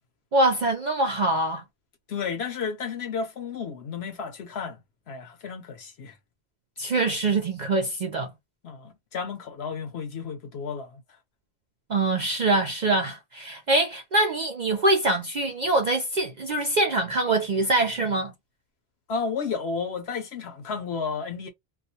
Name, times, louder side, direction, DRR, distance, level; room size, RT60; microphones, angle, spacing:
voice 1, 0.3-1.6 6.8-8.3 11.9-18.3, right 2 dB, 60° right, 0.4 m, -24 dB
voice 2, 2.1-4.8 5.1-6.1 8.6-11.0 19.1-21.5, left 5 dB, 65° left, 0.8 m, -32 dB
2.3 x 2.2 x 2.6 m
omnidirectional pair, 1.3 m